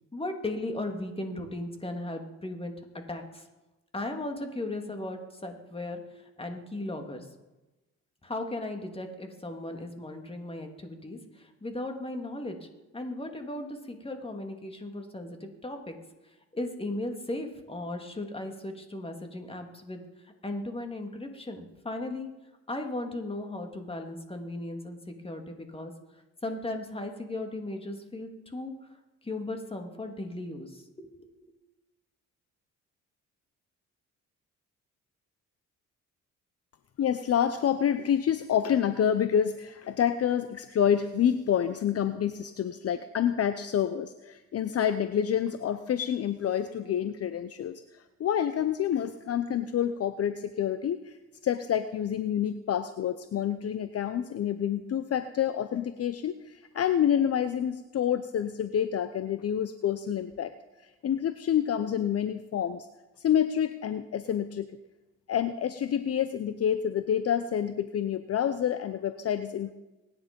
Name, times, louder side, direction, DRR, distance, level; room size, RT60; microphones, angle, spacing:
voice 1, 0.1-3.5 3.9-7.3 8.2-12.7 12.9-16.0 16.5-22.3 22.7-25.9 26.4-28.7 29.2-31.3, left 2 dB, 20° left, 4 dB, 2.6 m, -37 dB
voice 2, 37.0-51.2 51.4-60.5 61.0-62.9 63.2-64.7 65.3-69.7, left 9 dB, 50° left, 11 dB, 0.8 m, -28 dB
23.5 x 10.0 x 5.3 m, 1.0 s
cardioid pair, 90°, 30 cm